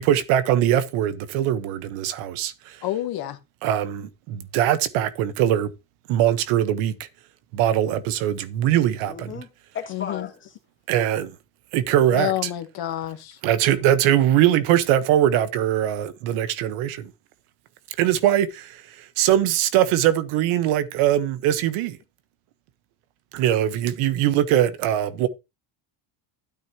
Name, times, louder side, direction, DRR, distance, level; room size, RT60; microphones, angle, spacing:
voice 1, 0.0-2.8 3.6-5.7 6.1-7.0 7.5-9.3 10.9-11.3 11.7-12.5 13.4-17.1 18.0-22.0 23.3-25.3, right 11 dB, 80° right, 1.4 m, -21 dB
voice 2, 2.8-3.4 9.9-10.3 12.1-13.4, left 14 dB, 45° left, 1.4 m, -28 dB
voice 3, 9.0-9.5 9.7-10.6, left 7 dB, 25° left, 2.5 m, -35 dB
13.0 x 8.5 x 3.0 m
cardioid pair, 175°, 49 cm